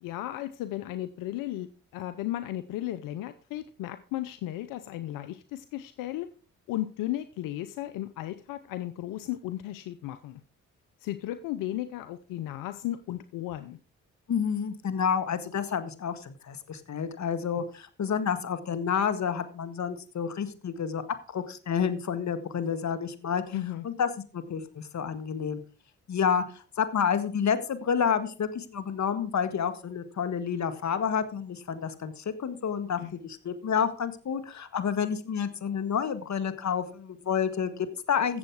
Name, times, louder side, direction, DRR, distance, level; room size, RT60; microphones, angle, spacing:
voice 1, 0.0-1.7 1.9-6.3 6.7-10.4 11.0-13.8 23.5-23.8 33.0-33.1, left 14 dB, 90° left, 11 dB, 0.7 m, -35 dB
voice 2, 14.3-21.0 21.3-23.4 23.8-25.6 26.1-38.4, left 7 dB, 60° left, 10 dB, 1.8 m, -29 dB
15.5 x 7.6 x 4.8 m, 0.38 s
supercardioid pair, 50°, 32 cm